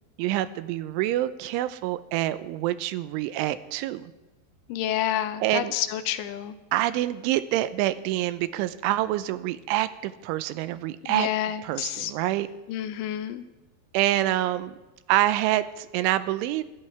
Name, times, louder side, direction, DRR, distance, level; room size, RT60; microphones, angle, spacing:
voice 1, 0.2-4.1 5.4-5.7 6.7-11.3 11.6-12.5 13.9-14.8 15.1-16.6, right 14 dB, 85° right, 14 dB, 3.1 m, -26 dB
voice 2, 4.7-6.6 11.0-12.1 12.7-13.4, left 11 dB, 80° left, 11 dB, 3.3 m, -29 dB
26.0 x 14.0 x 3.4 m, 1.1 s
omnidirectional pair, 5.6 m